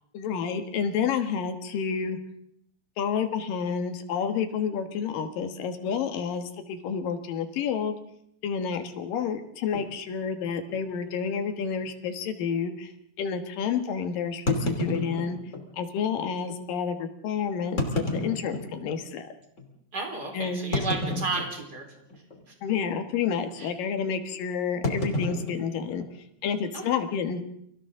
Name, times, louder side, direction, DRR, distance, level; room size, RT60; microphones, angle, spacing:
voice 1, 0.1-2.2 3.0-8.0 8.4-12.9 13.2-15.4 15.7-19.3 20.3-20.7 22.6-26.0 26.4-27.4, left 7 dB, 65° left, 7 dB, 2.9 m, -29 dB
sound 1, 9.7-9.9 10.6-10.8 11.1-11.2 11.8-11.9 14.5-15.7 16.5-16.6 17.6-19.0 19.6-19.7 20.7-21.8 22.1-22.5 22.7-23.0 24.8-26.5, left 1 dB, 20° left, 2.4 m, -30 dB
voice 2, 19.9-21.8 22.5-22.6 23.6-23.7 26.7-26.8, right 3 dB, 25° right, 2 dB, 4.3 m, -32 dB
30.0 x 24.5 x 3.8 m, 0.71 s
omnidirectional pair, 4.8 m